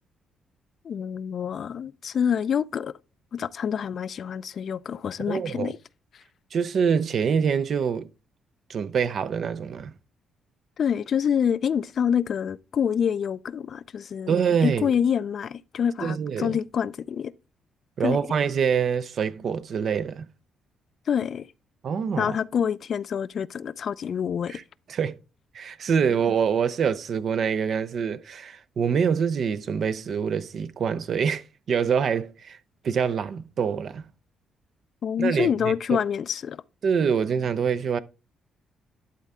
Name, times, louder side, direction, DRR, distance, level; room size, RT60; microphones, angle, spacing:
voice 1, 0.8-2.9 3.3-5.8 10.8-14.3 14.6-17.3 18.0-18.2 21.1-21.5 22.2-24.6 35.0-36.6, left 8 dB, 55° left, 0.4 m, -26 dB
voice 2, 5.3-5.7 6.5-8.1 8.7-9.9 14.3-14.9 16.0-16.6 18.0-20.3 21.8-22.4 24.5-24.6 24.9-25.2 25.5-32.6 32.8-34.0 35.2-36.0 36.8-38.0, right 6 dB, 60° right, 0.6 m, -25 dB
11.5 x 4.3 x 3.6 m
cardioid pair, 90°, 0 cm